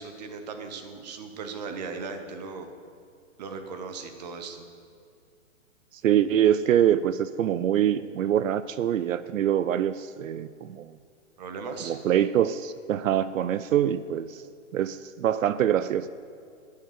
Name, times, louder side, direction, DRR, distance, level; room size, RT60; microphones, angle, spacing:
voice 1, 0.0-2.7 3.4-4.7 11.4-12.0, right 4 dB, 30° right, 6 dB, 1.1 m, -37 dB
voice 2, 6.0-10.9 11.9-14.4 14.7-16.1, right 10 dB, 80° right, 14 dB, 0.6 m, -24 dB
11.0 x 6.7 x 8.2 m, 2.3 s
hypercardioid pair, 165°, 39 cm